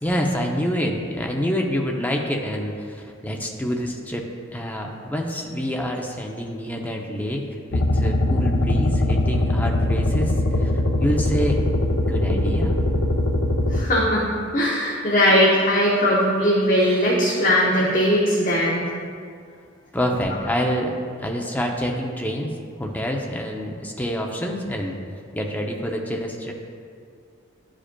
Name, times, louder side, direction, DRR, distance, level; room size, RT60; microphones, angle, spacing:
voice 1, 0.0-10.7 11.0-11.6 12.1-12.8 19.9-25.0 25.3-26.5, equal, 10° left, 1 dB, 0.6 m, -27 dB
sound 1, 7.7-13.8, left 1 dB, 80° left, 0.6 m, -21 dB
voice 2, 13.7-14.3 14.5-18.9, equal, 40° left, -5 dB, 0.8 m, -19 dB
11.5 x 5.0 x 2.2 m, 2.2 s
head